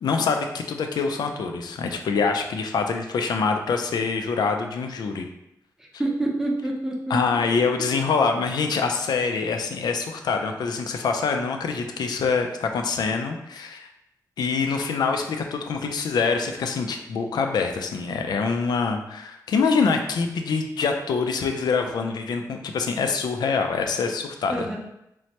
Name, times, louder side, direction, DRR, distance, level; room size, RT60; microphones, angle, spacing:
voice 1, 0.0-5.3 7.1-13.9 14.4-24.8, left 5 dB, 80° left, 5 dB, 0.3 m, -25 dB
voice 2, 5.8-7.4 7.9-8.1 24.5-24.8, right 1 dB, 5° right, -1 dB, 0.5 m, -28 dB
3.1 x 2.1 x 2.8 m, 0.84 s
wide cardioid pair, 110°, 7 cm